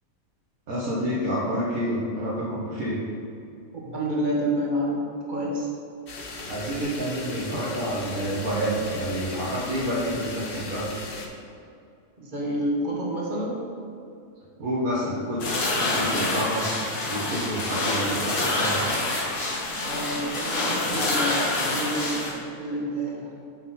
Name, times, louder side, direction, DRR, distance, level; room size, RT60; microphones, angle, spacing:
voice 1, 0.7-3.0 6.4-10.9 14.6-16.7 17.1-18.8, equal, 90° right, -9 dB, 1.7 m, -28 dB
voice 2, 3.7-5.7 12.2-13.6 19.8-23.4, right 1 dB, 35° right, -3 dB, 1.3 m, -29 dB
sound 1, 6.1-11.3, left 3 dB, 50° left, 0.8 m, -38 dB
sound 2, 15.4-22.3, left 2 dB, 90° left, 1.7 m, -27 dB
6.1 x 5.8 x 4.2 m, 2.5 s
omnidirectional pair, 1.4 m